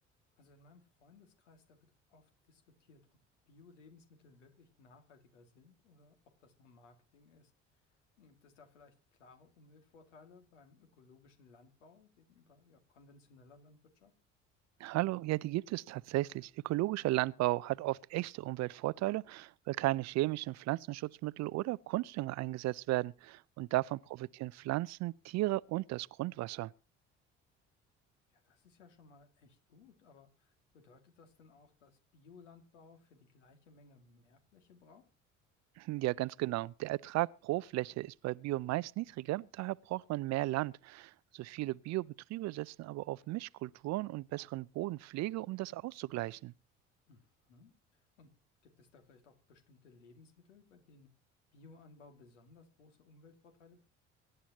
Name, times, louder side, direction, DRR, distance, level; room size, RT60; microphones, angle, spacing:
voice 1, 0.4-3.2 3.5-6.1 6.4-7.5 8.2-14.1 23.7-24.1 28.3-35.0 47.1-48.3 48.6-51.1 51.5-53.9, left 4 dB, 75° left, 2.5 m, -61 dB
voice 2, 14.8-26.7 35.8-46.5, right 18 dB, 50° right, 0.6 m, -35 dB
24.5 x 11.0 x 3.0 m
figure-of-eight pair, 55°, 36 cm